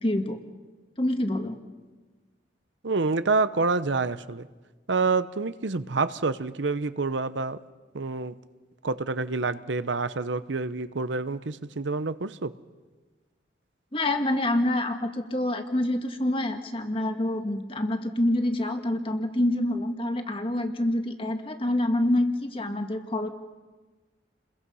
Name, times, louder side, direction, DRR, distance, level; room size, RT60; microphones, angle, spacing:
voice 1, 0.0-0.4 1.0-1.6 13.9-23.3, left 1 dB, 30° left, 6 dB, 1.7 m, -26 dB
voice 2, 2.8-4.5 4.9-7.6 7.9-8.3 8.8-12.5, right 3 dB, 75° right, 14 dB, 0.8 m, -27 dB
29.5 x 21.5 x 5.6 m, 1.3 s
head